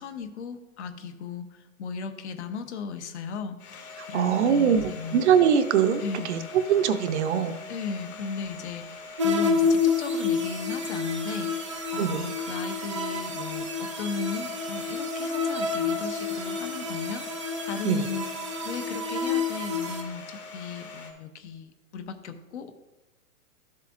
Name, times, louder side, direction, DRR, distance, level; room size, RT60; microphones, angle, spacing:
voice 1, 0.0-5.2 6.0-6.4 7.7-18.3 18.6-22.7, left 5 dB, 55° left, 9 dB, 0.9 m, -36 dB
Domestic sounds home sounds, 3.6-21.1, left 3 dB, 85° left, 2.3 m, -43 dB
voice 2, 4.1-6.0 6.3-6.4 6.7-7.5 12.0-12.3 17.8-18.0, right 8 dB, 50° right, 9 dB, 0.7 m, -22 dB
sound 1, 9.2-20.0, left 4 dB, 25° right, 0.3 m, -29 dB
12.5 x 7.4 x 2.5 m, 1.0 s
hypercardioid pair, 160°, 43 cm